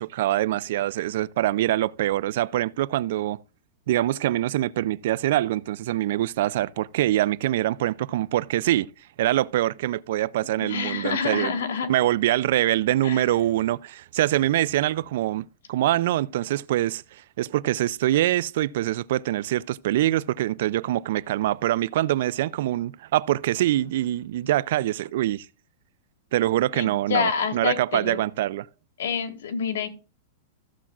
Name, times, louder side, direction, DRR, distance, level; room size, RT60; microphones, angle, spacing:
voice 1, 0.0-3.4 3.9-8.9 9.2-11.5 11.9-25.5 26.3-28.7, right 14 dB, 55° right, 0.4 m, -24 dB
voice 2, 10.6-11.9 13.0-13.2 26.7-28.2 29.0-29.9, left 6 dB, 90° left, 2.1 m, -27 dB
14.5 x 7.2 x 2.4 m
supercardioid pair, 170°, 0 cm